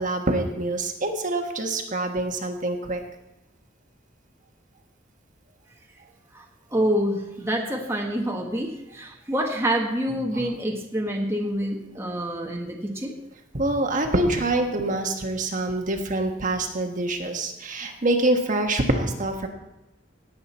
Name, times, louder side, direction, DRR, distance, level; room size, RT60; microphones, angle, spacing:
voice 1, 0.0-3.0 10.3-10.4 13.5-19.5, right 2 dB, 40° right, 3 dB, 1.4 m, -25 dB
voice 2, 6.7-13.1, right 1 dB, 15° right, 0 dB, 1.3 m, -27 dB
18.5 x 7.8 x 4.3 m, 0.94 s
head